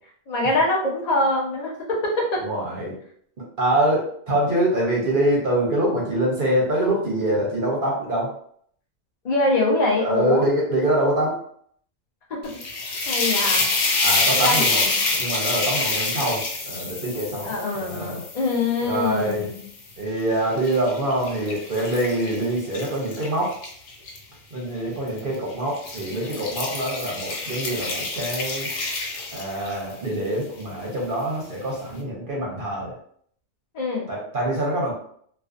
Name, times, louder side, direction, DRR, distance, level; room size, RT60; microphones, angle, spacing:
voice 1, 0.3-2.4 9.2-10.4 12.3-12.4 13.1-13.7 14.4-14.9 17.4-19.6 33.7-34.1, left 2 dB, 45° left, -2 dB, 0.6 m, -24 dB
voice 2, 2.4-3.0 3.4-8.3 10.0-11.4 14.0-18.2 18.8-19.5 20.0-23.5 24.5-28.7 29.3-32.9 34.1-34.9, right 1 dB, 50° right, -3 dB, 0.7 m, -25 dB
sound 1, 12.4-19.7 20.2-24.2 25.1-25.4 25.7-29.9, left 3 dB, 85° left, 1.0 m, -27 dB
2.4 x 2.3 x 2.4 m, 0.64 s
omnidirectional pair, 1.3 m